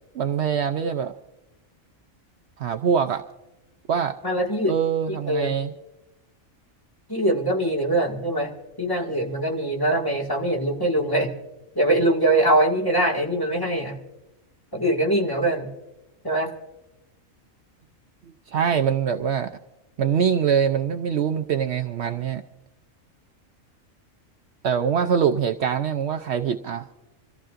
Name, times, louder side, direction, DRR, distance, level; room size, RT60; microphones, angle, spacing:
voice 1, 0.1-1.1 2.6-3.2 3.9-4.1 4.7-5.7 18.3-19.5 20.0-22.4 24.6-26.8, right 7 dB, 65° right, 7 dB, 0.8 m, -23 dB
voice 2, 4.2-4.8 5.1-5.5 7.1-8.5 8.8-11.3 11.8-14.0 14.7-15.7 16.2-16.5, right 1 dB, 15° left, -1 dB, 1.9 m, -22 dB
27.0 x 15.0 x 2.5 m, 0.99 s
omnidirectional pair, 1.4 m